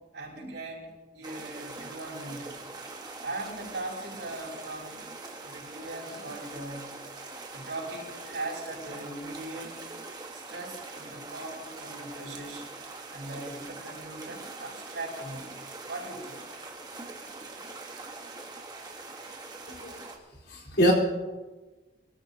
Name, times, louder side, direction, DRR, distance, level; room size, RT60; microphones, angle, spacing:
voice 1, 0.1-2.6 3.2-5.0 5.4-6.9 7.5-9.8 10.3-12.7 13.1-15.6 15.8-16.4, right 2 dB, 75° right, -4 dB, 5.8 m, -39 dB
sound 1, 1.2-20.2, right 3 dB, 20° right, 1.4 m, -43 dB
voice 2, 20.5-20.9, equal, 65° left, -2 dB, 4.1 m, -24 dB
24.0 x 14.0 x 2.8 m, 1.2 s
head